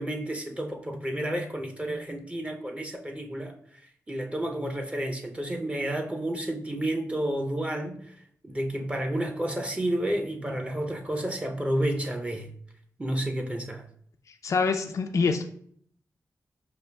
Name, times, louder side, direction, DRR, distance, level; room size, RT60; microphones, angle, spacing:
voice 1, 0.0-8.2 8.4-12.5 13.0-13.8, right 1 dB, 20° right, 0.6 m, -31 dB
voice 2, 14.4-15.4, left 4 dB, 55° left, 0.3 m, -25 dB
5.4 x 2.4 x 2.2 m
cardioid pair, 65°, 6 cm